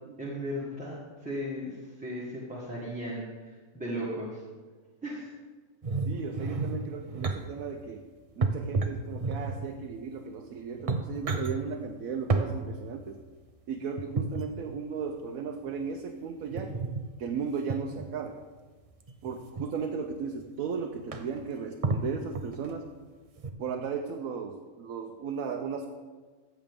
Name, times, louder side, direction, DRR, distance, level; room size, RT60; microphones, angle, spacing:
voice 1, 0.2-4.4 5.0-5.3, equal, 5° right, -6 dB, 1.6 m, -36 dB
sound 1, 5.8-7.4 8.4-9.7 10.4-10.5 10.7-11.5 12.3-12.5 14.0-14.4 16.6-17.0 17.7-18.1 19.1-19.6 20.4-20.5 20.8-20.9 21.1-21.4 21.8-22.7 23.4-23.5, right 3 dB, 40° right, 0.5 m, -30 dB
voice 2, 6.0-8.1 8.4-13.2 13.7-16.7 17.2-18.4 19.2-22.9 23.6-25.9, right 6 dB, 80° right, 3 dB, 1.1 m, -36 dB
14.0 x 7.8 x 3.7 m, 1.4 s
omnidirectional pair, 1.5 m